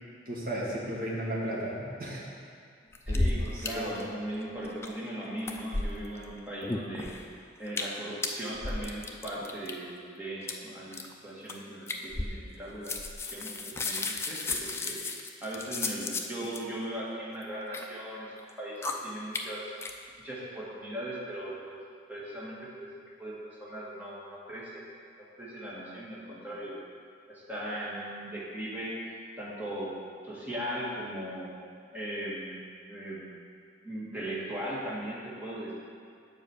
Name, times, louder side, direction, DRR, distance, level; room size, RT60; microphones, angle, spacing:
voice 1, 0.3-2.2 3.1-4.6, right 1 dB, 50° right, -6 dB, 2.0 m, -36 dB
sound 1, 2.9-3.7 3.9-4.0 4.3-5.1 5.4-6.2 6.6-7.3 7.7-8.0 8.2-9.7 10.4-10.5 10.9-11.1 11.5-11.6 11.9-12.6 12.8-16.6 17.3-17.8 18.4-18.5 18.8-18.9 19.3-19.4 19.8-19.9, left 2 dB, 15° left, 0.4 m, -33 dB
voice 2, 3.0-7.1 7.6-12.9 13.2-15.0 15.4-19.7 20.2-21.8 22.1-22.9 23.2-23.3 23.6-24.8 25.4-26.8 27.3-28.9 29.4-29.9 30.2-31.5 31.9-33.4 33.8-35.7, right 1 dB, 10° right, -7 dB, 1.6 m, -38 dB
7.3 x 5.1 x 7.0 m, 2.3 s
head